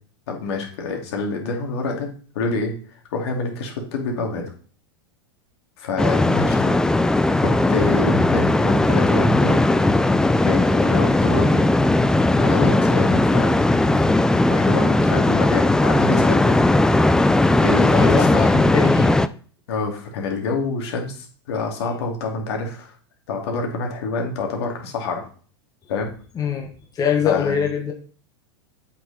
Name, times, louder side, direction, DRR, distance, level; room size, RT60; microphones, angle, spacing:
voice 1, 0.3-2.7 3.1-4.4 5.8-6.8 7.4-9.6 10.4-11.6 12.4-14.0 14.5-16.6 17.6-18.6 19.7-22.9 23.3-25.2 25.9-26.1 27.2-27.6, left 3 dB, 70° left, 1 dB, 2.7 m, -27 dB
sound 1, 6.0-19.3, left 2 dB, 5° left, 0.3 m, -17 dB
voice 2, 17.9-19.2 26.3-27.9, left 7 dB, 25° left, 2 dB, 1.3 m, -23 dB
8.0 x 6.0 x 4.2 m, 0.42 s
hypercardioid pair, 105°, 14 cm